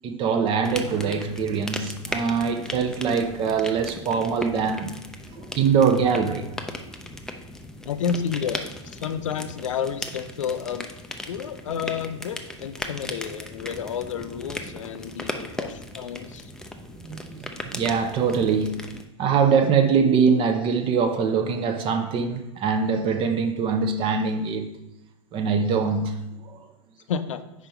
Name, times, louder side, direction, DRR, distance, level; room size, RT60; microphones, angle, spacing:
voice 1, 0.0-5.0 5.3-6.5 16.9-18.8 19.2-24.7 25.3-26.2 26.4-26.7, right 6 dB, 30° right, 0.7 m, -23 dB
sound 1, 0.6-19.0, left 1 dB, 5° left, 0.5 m, -37 dB
voice 2, 7.8-10.9 11.3-16.5 27.1-27.4, left 7 dB, 75° left, 0.5 m, -30 dB
5.0 x 4.8 x 4.4 m
hypercardioid pair, 100°, 16 cm